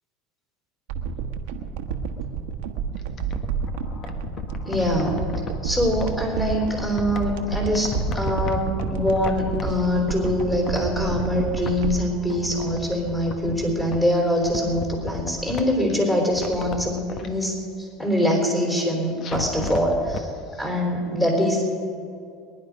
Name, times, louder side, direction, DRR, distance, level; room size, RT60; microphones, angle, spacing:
sound 1, 0.9-13.4 13.6-13.7, right 6 dB, 85° right, 1.3 m, -30 dB
sound 2, 3.0-6.1 6.6-9.8 10.1-11.9 12.2-14.1 14.4-15.9 16.3-17.3 19.2-20.2 20.6-20.7, left 5 dB, 40° left, 1.4 m, -34 dB
voice 1, 4.6-5.2 5.6-20.3 20.6-21.8, equal, 10° left, 0 dB, 4.0 m, -24 dB
22.5 x 10.5 x 5.3 m, 2.5 s
supercardioid pair, 115°, 0 cm